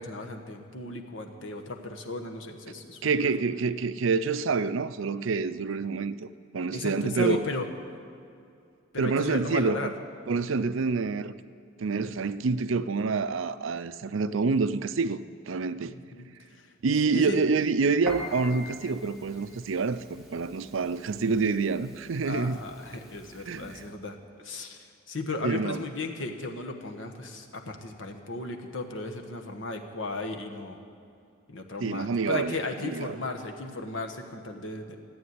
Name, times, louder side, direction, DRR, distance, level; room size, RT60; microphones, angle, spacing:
voice 1, 0.0-3.3 6.7-7.7 8.9-9.9 15.8-16.7 17.1-17.4 22.2-30.8 31.5-35.0, left 2 dB, 70° left, 4 dB, 1.4 m, -35 dB
voice 2, 3.0-6.3 6.5-7.4 9.0-9.9 10.3-11.3 11.8-15.9 16.8-22.6 23.5-23.8 25.4-25.8 31.8-33.2, right 4 dB, 70° right, 13 dB, 0.5 m, -27 dB
Piano, 18.1-23.9, equal, ahead, 2.1 m, -44 dB
14.5 x 8.7 x 9.5 m, 2.4 s
head